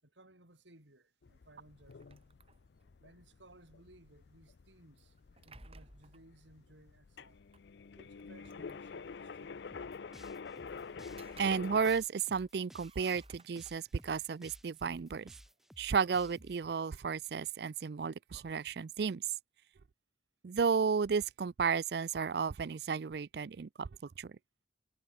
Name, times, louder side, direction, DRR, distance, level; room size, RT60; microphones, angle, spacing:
voice 1, 0.0-2.2 3.0-7.4 7.9-9.8 10.7-11.0, right 1 dB, 80° right, 4.9 m, -61 dB
sound 1, 1.2-11.9, left 5 dB, 65° left, 0.5 m, -48 dB
sound 2, 1.9-3.0 5.0-6.3 7.5-7.6 8.2-9.3 10.9-12.1 12.4-14.0 14.5-16.2, right 3 dB, 30° right, 2.7 m, -60 dB
sound 3, 9.7-16.6, equal, ahead, 4.2 m, -57 dB
voice 2, 11.4-15.3 15.8-19.2 20.4-23.9 24.2-24.3, right 5 dB, 60° right, 0.4 m, -33 dB
head